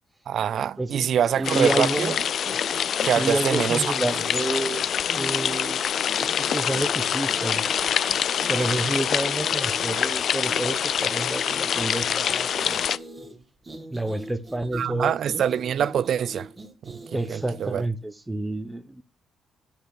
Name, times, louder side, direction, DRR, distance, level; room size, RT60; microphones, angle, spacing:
voice 1, 0.3-2.2 3.0-3.9 14.7-16.5 16.8-17.8, right 9 dB, 65° right, 0.3 m, -25 dB
sound 1, 0.8-17.9, right 1 dB, 25° right, 1.9 m, -42 dB
sound 2, 1.4-13.0, left 8 dB, 60° left, 0.4 m, -25 dB
voice 2, 1.4-2.1 3.2-4.8 5.1-7.7 8.5-12.8 13.9-15.4 17.1-19.0, right 1 dB, 10° right, 0.7 m, -29 dB
8.0 x 5.1 x 5.9 m
cardioid pair, 90°, 0 cm